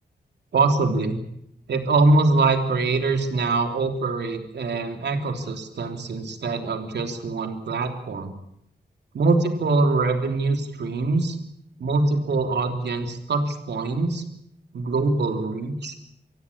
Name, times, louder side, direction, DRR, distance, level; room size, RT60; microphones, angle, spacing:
voice 1, 0.5-1.2 1.7-8.3 9.1-11.4 11.8-14.2 14.7-15.9, right 3 dB, 80° right, 6 dB, 3.2 m, -23 dB
24.5 x 16.0 x 8.7 m, 0.75 s
cardioid pair, 70°, 18 cm